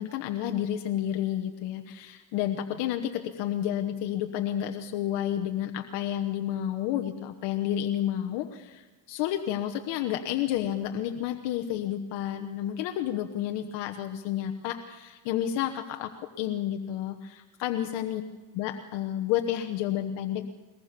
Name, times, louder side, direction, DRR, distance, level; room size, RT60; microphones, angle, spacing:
voice 1, 0.0-18.2 18.5-20.5, left 11 dB, 90° left, 6 dB, 1.2 m, -30 dB
22.5 x 19.0 x 6.8 m, 1.2 s
supercardioid pair, 75°, 40 cm